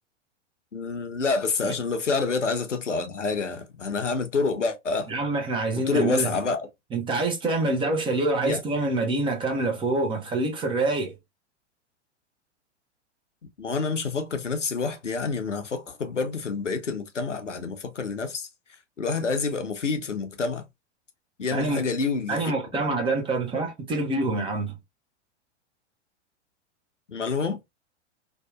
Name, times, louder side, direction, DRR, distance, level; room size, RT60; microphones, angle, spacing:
voice 1, 0.7-5.1 5.9-6.7 8.4-8.6 13.6-18.5 19.0-20.6 21.4-22.8 27.1-27.6, left 4 dB, 85° left, 0.6 m, -28 dB
voice 2, 5.1-6.3 6.9-11.1 21.5-21.9 22.3-24.7, right 2 dB, 15° right, 0.6 m, -26 dB
2.7 x 2.3 x 2.3 m
figure-of-eight pair, 95°, 36 cm